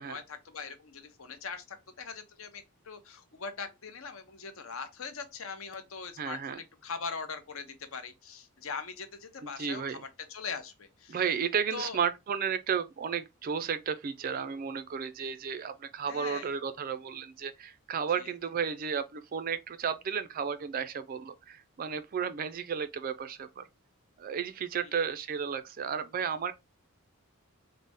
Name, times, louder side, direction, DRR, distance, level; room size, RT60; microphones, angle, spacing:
voice 1, 0.0-10.0 10.3-11.2 11.7-12.0 16.1-16.5 18.2-18.3 24.8-25.1, left 5 dB, 65° left, 0.7 m, -41 dB
voice 2, 6.2-6.6 9.4-10.0 11.1-23.6 24.2-26.5, right 7 dB, 40° right, 0.3 m, -33 dB
4.0 x 2.0 x 3.4 m
head